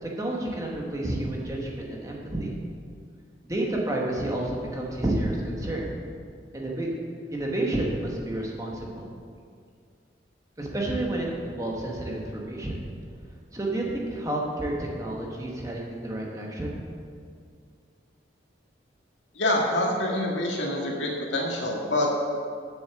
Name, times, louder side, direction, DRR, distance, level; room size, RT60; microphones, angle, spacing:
voice 1, 0.0-2.6 3.4-5.9 6.5-6.9 7.3-9.1 10.6-12.8 13.5-16.8, right 1 dB, 20° right, -2 dB, 1.3 m, -30 dB
voice 2, 19.4-22.1, left 1 dB, 85° left, -1 dB, 1.8 m, -26 dB
7.8 x 7.2 x 7.0 m, 2.2 s
head